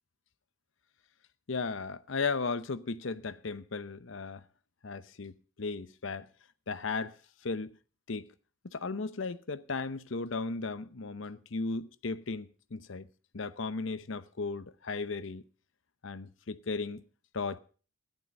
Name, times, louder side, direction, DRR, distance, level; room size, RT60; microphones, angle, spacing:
voice 1, 1.5-4.4 4.8-5.3 5.6-6.3 6.7-7.2 7.4-7.7 8.1-8.3 8.7-13.1 13.3-15.4 16.0-17.0 17.3-17.6, left 4 dB, 70° left, 0.8 m, -35 dB
14.5 x 11.5 x 5.3 m
head